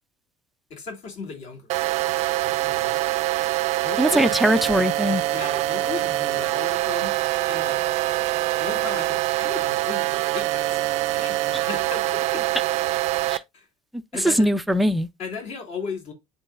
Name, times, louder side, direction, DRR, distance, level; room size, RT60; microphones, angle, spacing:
voice 1, 0.7-1.7 2.1-3.0 3.8-4.4 5.1-7.2 7.5-7.8 8.6-12.4 13.5-13.7 14.1-14.5 15.2-16.1, left 5 dB, 55° left, 2.8 m, -36 dB
sound 1, 1.7-13.4, right 17 dB, 60° right, 0.5 m, -24 dB
voice 2, 4.0-5.2 13.3-13.4 14.2-15.1, equal, ahead, 0.4 m, -20 dB
10.5 x 3.9 x 2.4 m
cardioid pair, 140°, 13 cm